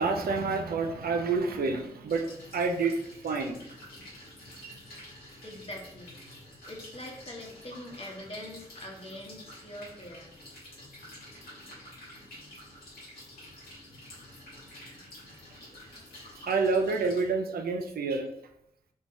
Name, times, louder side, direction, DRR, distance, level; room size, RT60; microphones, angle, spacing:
voice 1, 0.0-3.6 4.6-4.7 16.3-18.3, right 4 dB, 80° right, 5 dB, 0.4 m, -28 dB
sound 1, 2.1-17.2, left 1 dB, 85° left, 1.4 m, -49 dB
voice 2, 5.4-6.1 6.7-10.3 13.1-13.5, left 1 dB, 40° left, -1 dB, 1.1 m, -43 dB
3.2 x 3.0 x 2.7 m, 0.79 s
cardioid pair, 45°, 15 cm